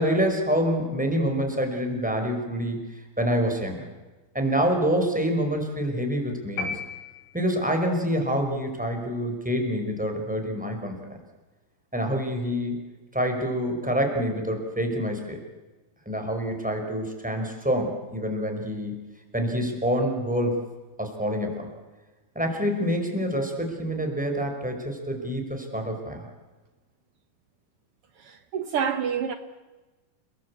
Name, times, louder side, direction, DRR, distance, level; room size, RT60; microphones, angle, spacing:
voice 1, 0.0-2.8 3.2-3.8 4.3-6.8 7.3-11.2 11.9-12.8 13.1-15.4 16.0-19.1 19.3-20.6 21.0-21.7 22.3-26.3, equal, ahead, 5.0 m, -26 dB
sound 1, 6.6-7.8, left 4 dB, 90° left, 5.5 m, -34 dB
voice 2, 28.2-29.3, right 7 dB, 75° right, 1.3 m, -28 dB
29.5 x 21.0 x 8.6 m
omnidirectional pair, 4.3 m